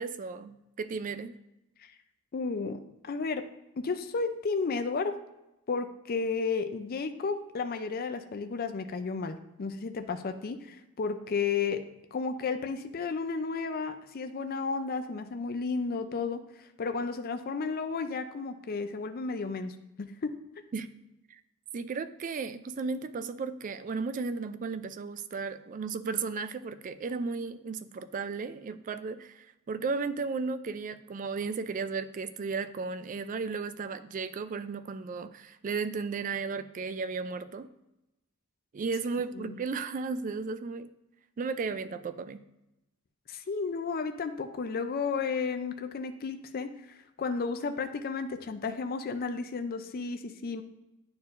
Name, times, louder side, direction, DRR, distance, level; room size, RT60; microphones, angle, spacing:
voice 1, 0.0-1.4 20.7-20.9 21.7-37.7 38.7-40.9 41.4-42.4, right 4 dB, 35° right, 12 dB, 0.3 m, -34 dB
voice 2, 2.3-3.4 3.8-5.2 5.7-11.8 12.1-16.4 16.8-20.1 39.4-39.6 43.3-50.6, left 4 dB, 45° left, 8 dB, 0.4 m, -33 dB
9.5 x 4.4 x 2.5 m, 0.92 s
head